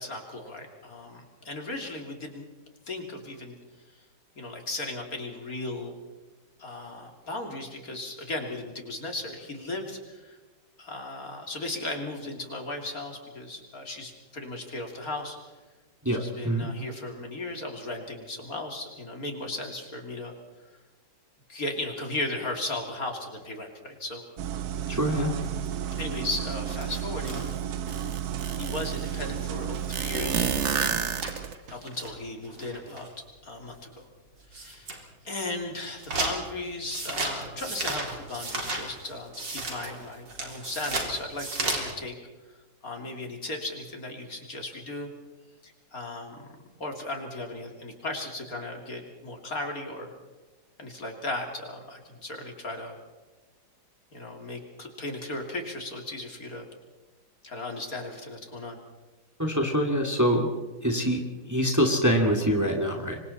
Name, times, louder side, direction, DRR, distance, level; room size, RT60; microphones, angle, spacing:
voice 1, 0.0-2.4 2.9-3.5 4.4-6.0 6.6-10.4 10.8-15.4 16.1-20.3 21.5-24.2 25.1-25.4 26.0-27.4 28.5-30.5 31.7-33.1 33.4-34.1 34.5-34.9 35.3-42.2 42.8-45.1 45.6-46.4 46.8-50.1 50.8-53.0 54.1-56.7 57.4-58.8, left 2 dB, 50° left, 3 dB, 3.5 m, -36 dB
sound 1, 24.4-31.5, right 9 dB, 65° right, 1.3 m, -33 dB
voice 2, 24.9-25.3 59.4-60.5 60.8-63.2, equal, 10° right, 2 dB, 2.4 m, -25 dB
sound 2, 24.9-29.4 29.8-29.9 30.1-30.2 30.5-30.6 30.8-33.2 33.8-33.9 34.4-35.0 35.3-41.9, right 2 dB, 85° right, 4.4 m, -35 dB
sound 3, 27.4-27.5 27.9-29.0 29.9-31.7, right 6 dB, 45° right, 1.4 m, -29 dB
26.5 x 24.5 x 4.3 m, 1.2 s
omnidirectional pair, 1.9 m